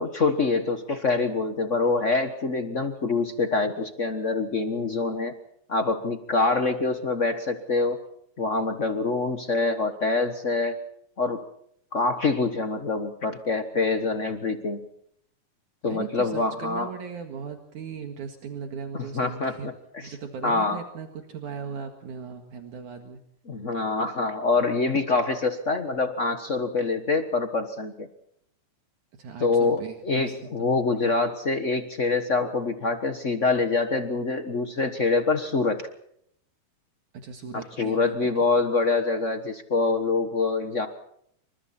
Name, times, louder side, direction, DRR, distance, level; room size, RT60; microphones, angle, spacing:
voice 1, 0.0-5.3 5.7-8.0 8.4-10.8 11.2-11.4 11.9-14.8 15.8-16.9 18.9-20.1 20.4-20.8 23.5-28.1 29.4-35.9 37.8-40.9, left 3 dB, 70° left, 7 dB, 0.7 m, -25 dB
voice 2, 15.9-19.7 20.0-23.2 29.1-30.7 30.9-31.1 37.1-38.3, right 6 dB, 70° right, 4 dB, 3.2 m, -38 dB
28.0 x 25.5 x 4.3 m, 0.71 s
omnidirectional pair, 3.7 m